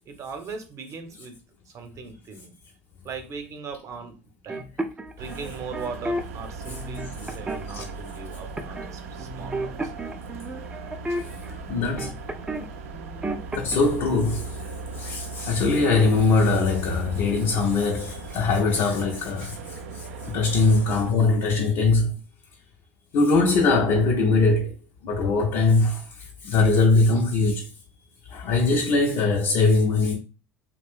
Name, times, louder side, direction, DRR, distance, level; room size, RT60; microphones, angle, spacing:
voice 1, 0.1-1.4 1.7-2.5 3.0-4.2 4.4-4.7 5.2-9.8 12.0-12.1 21.1-21.2, right 4 dB, 45° right, 0.7 m, -39 dB
sound 1, 4.5-6.2 6.7-7.9 8.6-8.9 9.2-12.7 12.9-13.8, right 1 dB, 15° right, 0.4 m, -32 dB
sound 2, 5.2-21.1, right 3 dB, 80° right, 0.4 m, -38 dB
voice 2, 11.1-12.1 13.5-14.6 14.9-22.1 23.1-24.7 25.0-27.7 28.3-30.2, left 3 dB, 60° left, 0.5 m, -22 dB
2.4 x 2.0 x 3.5 m
hypercardioid pair, 70°, 7 cm